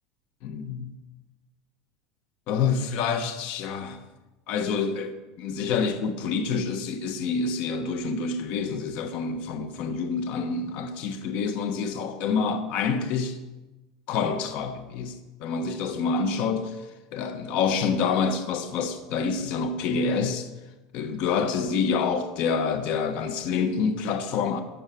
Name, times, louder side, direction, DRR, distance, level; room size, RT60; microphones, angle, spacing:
voice 1, 0.4-0.9 2.5-4.0 4.5-13.4 14.1-16.8 17.1-20.5 20.9-24.6, left 5 dB, 50° left, 1.1 m, -27 dB
12.5 x 7.2 x 7.6 m
supercardioid pair, 150°, 3 cm